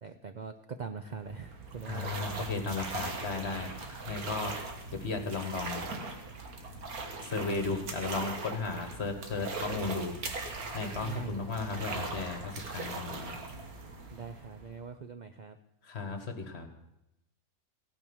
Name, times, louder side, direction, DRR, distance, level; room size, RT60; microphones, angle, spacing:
voice 1, 0.0-2.5 11.0-11.6 14.1-15.6, right 5 dB, 60° right, 8 dB, 0.4 m, -42 dB
sound 1, 1.1-14.9, right 3 dB, 80° right, 2.0 m, -40 dB
voice 2, 1.9-4.5 4.9-5.8 7.2-10.1 10.7-13.4 15.8-16.7, left 4 dB, 50° left, 6 dB, 1.6 m, -35 dB
16.0 x 9.0 x 6.2 m, 0.88 s
omnidirectional pair, 1.5 m